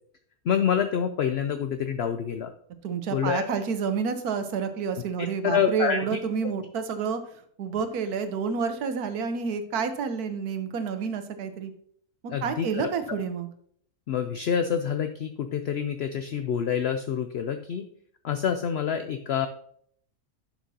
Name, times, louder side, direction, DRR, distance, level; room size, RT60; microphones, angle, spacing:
voice 1, 0.5-2.5 3.1-3.4 5.2-6.0 12.3-12.9 14.1-17.8 18.2-19.5, left 8 dB, 65° left, 7 dB, 0.6 m, -27 dB
voice 2, 2.8-7.2 7.6-11.7 12.4-13.5, right 6 dB, 80° right, 9 dB, 1.3 m, -29 dB
11.0 x 5.9 x 2.8 m, 0.62 s
omnidirectional pair, 1.6 m